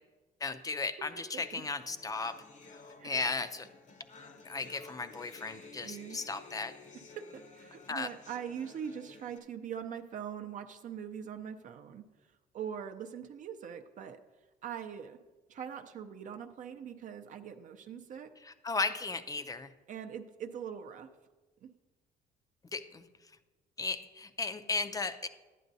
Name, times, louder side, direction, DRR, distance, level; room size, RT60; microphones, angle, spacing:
voice 1, 0.4-2.4 3.0-3.7 4.4-6.7 7.9-8.1 18.4-19.7 22.7-23.0 23.8-25.3, left 4 dB, 20° left, 11 dB, 0.5 m, -35 dB
sound 1, 1.4-9.4, left 3 dB, 45° left, 0.8 m, -54 dB
voice 2, 5.8-6.2 7.1-14.2 14.6-15.2 15.5-18.3 19.9-21.1 21.6-21.7, right 8 dB, 50° right, 6 dB, 0.5 m, -42 dB
11.0 x 9.2 x 2.7 m, 1.2 s
cardioid pair, 110°, 17 cm